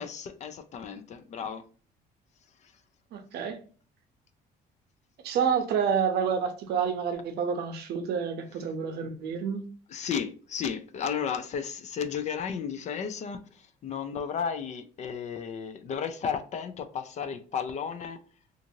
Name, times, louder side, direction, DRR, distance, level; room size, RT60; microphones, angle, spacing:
voice 1, 0.0-1.6 9.9-13.4 13.8-18.2, left 7 dB, 45° left, 0.4 m, -33 dB
voice 2, 3.1-3.6 5.2-9.6, right 7 dB, 70° right, 0.6 m, -28 dB
2.6 x 2.5 x 2.8 m
cardioid pair, 110°, 17 cm